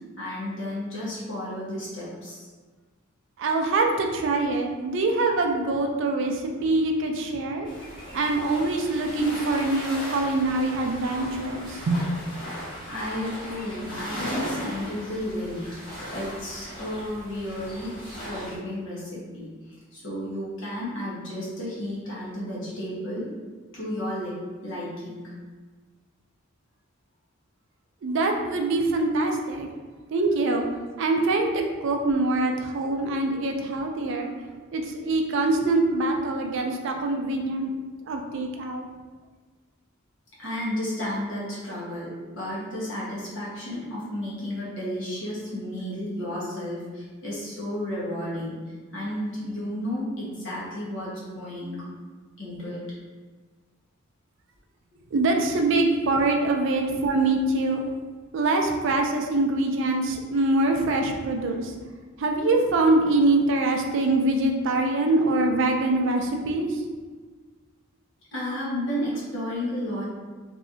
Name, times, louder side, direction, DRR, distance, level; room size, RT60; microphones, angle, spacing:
voice 1, 0.0-2.5 12.9-23.3 23.7-24.4 24.6-25.3 40.4-51.8 52.4-52.8 68.3-70.1, left 1 dB, 65° left, -7 dB, 1.1 m, -32 dB
voice 2, 3.4-7.7 8.1-12.0 28.0-29.7 30.1-30.7 31.0-34.3 34.7-37.7 38.1-38.9 55.1-57.8 58.3-61.7 62.2-66.8, right 2 dB, 60° right, 3 dB, 0.4 m, -24 dB
sound 1, 7.6-18.6, equal, 25° left, 1.0 m, -37 dB
3.1 x 2.7 x 2.6 m, 1.4 s
head